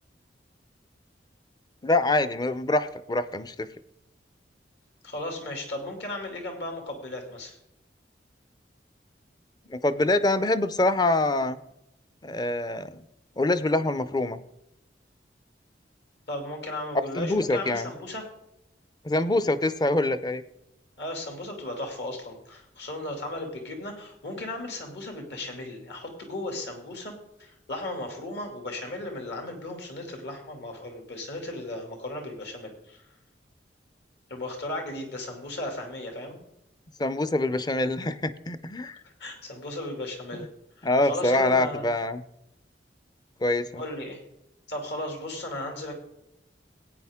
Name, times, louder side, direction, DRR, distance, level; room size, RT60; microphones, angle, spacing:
voice 1, 1.8-3.7 9.7-11.6 12.2-13.0 13.4-14.4 17.1-17.9 19.0-20.4 37.0-39.0 40.3-40.5 40.8-42.2 43.4-43.8, left 2 dB, 25° left, 13 dB, 0.5 m, -25 dB
voice 2, 5.0-7.5 16.3-18.3 21.0-27.1 27.4-33.0 34.3-36.4 39.0-40.5 40.8-41.8 43.7-44.2 44.7-45.9, left 1 dB, 70° left, 3 dB, 2.4 m, -36 dB
15.0 x 9.1 x 3.6 m, 0.84 s
head